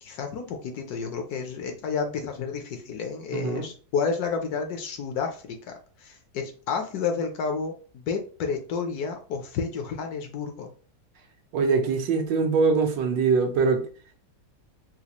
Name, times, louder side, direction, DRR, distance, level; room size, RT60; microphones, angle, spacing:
voice 1, 0.0-5.7 6.0-10.7, left 5 dB, 70° left, 1.0 m, -30 dB
voice 2, 3.3-3.7 11.5-13.8, right 5 dB, 80° right, 1.4 m, -23 dB
4.1 x 2.3 x 2.9 m
omnidirectional pair, 1.9 m